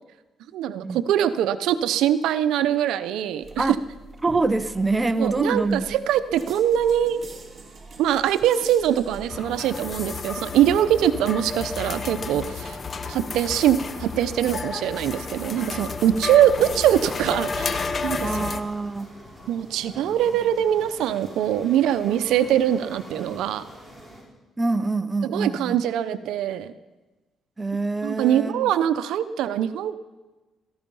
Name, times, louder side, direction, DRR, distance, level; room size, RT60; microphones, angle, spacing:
voice 1, 0.5-3.8 5.2-7.2 8.0-12.8 13.1-18.3 19.5-23.6 25.2-26.7 28.0-30.0, right 10 dB, 85° right, 12 dB, 0.7 m, -23 dB
sound 1, 3.4-9.3, right 3 dB, 35° right, 3.1 m, -44 dB
voice 2, 4.2-5.9 18.2-19.1 24.6-25.8 27.6-28.7, right 3 dB, 20° right, 12 dB, 0.8 m, -25 dB
sound 2, 9.3-18.6, left 4 dB, 40° left, 1.0 m, -32 dB
bees - a lot of them, 12.2-24.2, equal, ahead, 6.0 m, -45 dB
18.0 x 14.5 x 5.5 m, 1.2 s
cardioid pair, 90°, 0 cm